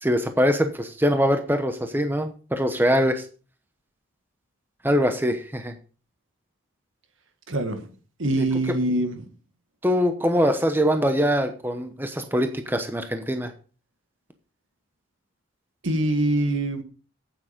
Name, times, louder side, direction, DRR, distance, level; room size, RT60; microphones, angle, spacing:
voice 1, 0.0-3.2 4.8-5.7 8.4-8.5 9.8-13.5, equal, 10° right, 0.9 m, -23 dB
voice 2, 7.5-7.8 8.2-9.3 15.8-16.8, right 1 dB, 70° right, 1.7 m, -24 dB
8.9 x 8.3 x 5.1 m
head